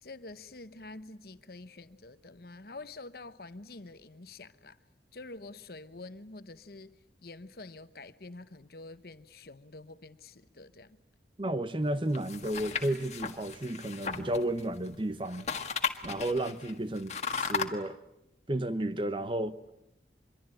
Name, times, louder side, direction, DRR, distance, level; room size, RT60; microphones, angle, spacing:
voice 1, 0.0-4.8 5.1-11.0, left 2 dB, 55° left, 1.0 m, -47 dB
voice 2, 11.4-15.5 16.0-18.0 18.5-19.6, right 1 dB, 30° right, 0.9 m, -32 dB
sound 1, 12.1-14.9 15.2-17.7, left 6 dB, 40° left, 1.7 m, -35 dB
25.5 x 23.0 x 9.0 m
head